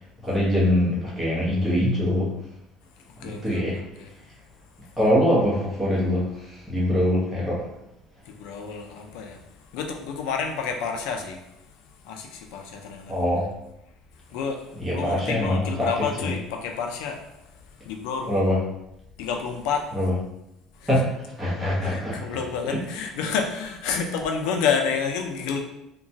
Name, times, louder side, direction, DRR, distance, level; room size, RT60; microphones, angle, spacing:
voice 1, 0.2-2.3 3.2-3.8 5.0-7.7 13.1-13.5 14.7-15.9 16.2-16.3 18.3-18.6 19.9-20.1 20.9-22.4 22.7-22.8, equal, 5° right, -8 dB, 0.9 m, -23 dB
voice 2, 3.2-4.1 8.4-9.4 9.7-11.4 12.1-13.1 14.3-14.6 14.9-17.2 17.9-18.3 19.2-19.9 20.8-20.9 21.8-25.6, left 6 dB, 75° left, 4 dB, 0.4 m, -29 dB
2.9 x 2.2 x 2.7 m, 0.86 s
cardioid pair, 170°, 0 cm